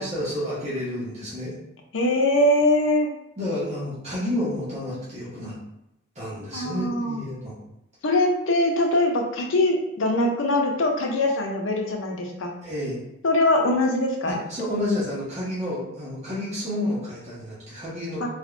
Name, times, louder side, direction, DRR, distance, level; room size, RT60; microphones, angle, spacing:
voice 1, 0.0-1.5 3.4-5.6 6.1-7.6 12.6-13.0 14.3-18.3, left 1 dB, 35° right, -9 dB, 1.4 m, -30 dB
voice 2, 1.9-3.1 6.5-7.2 8.0-12.5 13.2-14.4 18.2-18.3, left 1 dB, 80° left, 2 dB, 0.7 m, -22 dB
4.2 x 3.2 x 2.6 m, 0.84 s
head